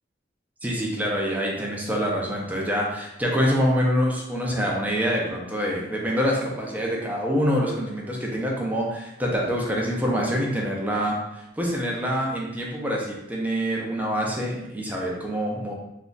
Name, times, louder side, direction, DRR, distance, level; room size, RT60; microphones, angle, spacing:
voice 1, 0.6-15.7, equal, 10° right, -3 dB, 0.5 m, -26 dB
2.4 x 2.1 x 3.8 m, 0.86 s
head